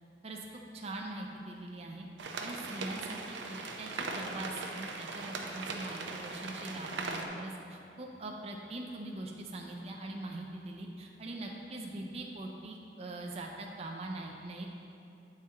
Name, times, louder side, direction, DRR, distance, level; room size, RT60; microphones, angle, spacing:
voice 1, 0.7-2.1 2.4-14.7, right 2 dB, 35° right, 0 dB, 0.5 m, -42 dB
sound 1, 2.2-7.3, right 3 dB, 85° right, 0.6 m, -39 dB
8.7 x 4.3 x 3.6 m, 2.7 s
head